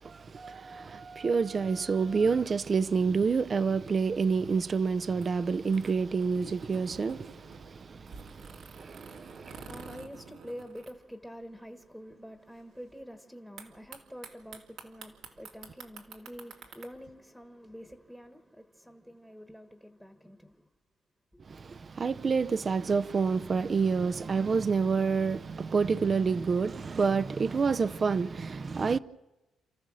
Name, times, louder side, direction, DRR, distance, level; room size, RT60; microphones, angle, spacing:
voice 1, 0.0-9.7 21.4-29.0, right 5 dB, 40° right, 0.6 m, -28 dB
sound 1, 3.7-11.6 11.8-11.9 12.1-12.6 13.6-16.9, right 5 dB, 80° right, 2.4 m, -50 dB
voice 2, 8.4-20.7 21.3-21.4, equal, ahead, 1.3 m, -47 dB
30.0 x 14.0 x 6.3 m
cardioid pair, 90°, 0 cm